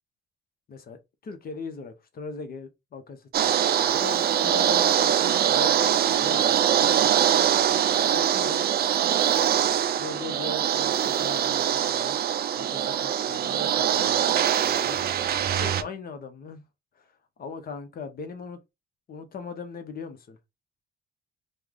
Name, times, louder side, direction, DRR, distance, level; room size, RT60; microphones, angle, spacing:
voice 1, 1.2-7.1 7.7-8.7 9.9-12.2 12.6-15.0 15.5-16.6 16.9-17.1 17.4-18.6 19.1-20.4, left 5 dB, 50° left, 0.7 m, -39 dB
sound 1, 3.3-15.8, right 9 dB, 50° right, 0.4 m, -23 dB
3.2 x 2.0 x 3.6 m
cardioid pair, 90°, 20 cm